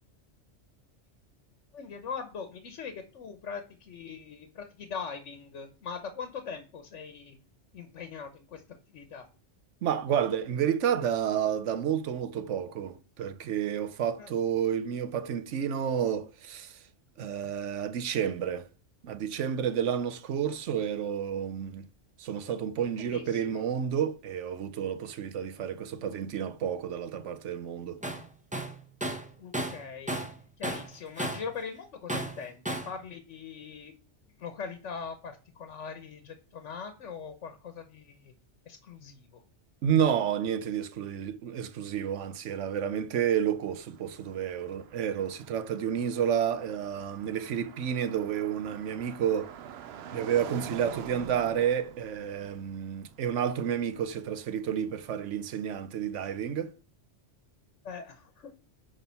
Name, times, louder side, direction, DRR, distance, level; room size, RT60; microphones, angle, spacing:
voice 1, 1.7-7.4 7.7-8.6 8.9-9.3 14.2-14.4 22.3-22.4 22.7-23.6 29.4-30.2 30.6-33.9 34.4-38.3 38.7-39.4 57.8-58.5, left 6 dB, 85° left, 1.3 m, -41 dB
voice 2, 9.8-16.8 17.2-18.7 19.0-21.9 22.2-28.0 39.8-49.6 50.1-56.7, right 9 dB, 85° right, 1.1 m, -30 dB
Tools, 28.0-28.2 28.5-30.4 30.6-31.5 32.1-33.0, right 1 dB, 5° right, 0.8 m, -34 dB
Car passing by, 43.4-55.2, right 8 dB, 65° right, 0.8 m, -47 dB
9.4 x 3.7 x 5.7 m
omnidirectional pair, 1.2 m